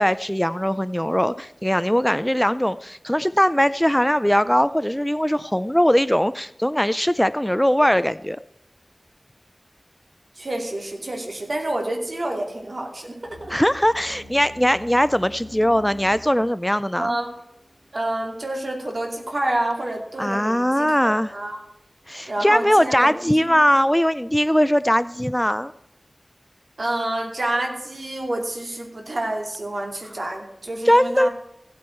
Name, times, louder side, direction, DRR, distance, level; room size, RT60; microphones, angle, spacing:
voice 1, 0.0-8.4 13.5-17.2 20.2-21.3 22.1-25.7 30.9-31.3, equal, 10° left, 15 dB, 0.4 m, -20 dB
voice 2, 10.4-13.5 17.0-17.3 17.9-21.6 22.3-23.6 26.8-31.3, right 1 dB, 70° right, 2 dB, 2.7 m, -28 dB
sound 1, 13.2-19.2, left 1 dB, 90° right, 5.4 m, -47 dB
15.5 x 8.4 x 4.5 m, 0.85 s
wide cardioid pair, 60°, 0 cm